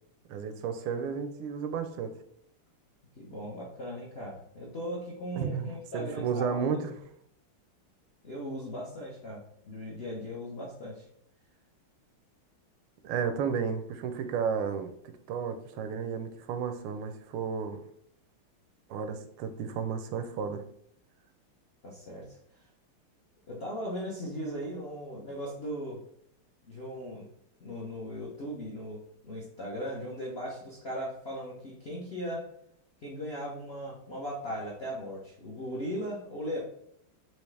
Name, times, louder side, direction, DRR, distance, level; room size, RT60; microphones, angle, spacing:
voice 1, 0.3-2.1 5.4-7.0 13.0-17.8 18.9-20.6, right 6 dB, 80° right, 1.4 m, -33 dB
voice 2, 3.2-6.8 8.2-11.1 21.8-22.4 23.5-26.0 26.6-27.3 27.6-32.5 33.0-36.6, equal, 65° left, 0.6 m, -38 dB
4.8 x 2.7 x 3.2 m
omnidirectional pair, 2.4 m